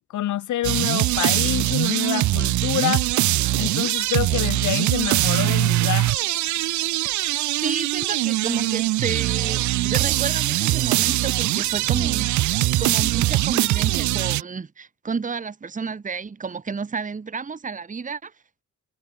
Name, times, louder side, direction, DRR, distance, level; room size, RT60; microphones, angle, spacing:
voice 1, 0.0-3.1 3.6-6.3, left 13 dB, 75° left, 2.9 m, -27 dB
sound 1, 0.6-14.4, right 16 dB, 70° right, 0.6 m, -22 dB
voice 2, 7.6-12.4 12.8-18.3, right 5 dB, 25° right, 1.4 m, -31 dB
cardioid pair, 90°, 30 cm